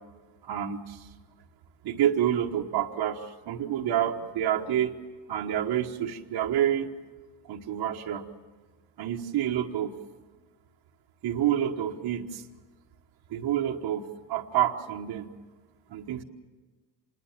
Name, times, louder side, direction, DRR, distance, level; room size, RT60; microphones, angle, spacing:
voice 1, 0.4-1.1 1.8-4.9 5.3-6.9 7.5-8.2 9.0-9.9 11.2-12.4 13.3-15.3 15.9-16.2, right 10 dB, 55° right, 1 dB, 1.4 m, -28 dB
26.5 x 20.5 x 7.4 m, 1.3 s
cardioid pair, 170°, 45 cm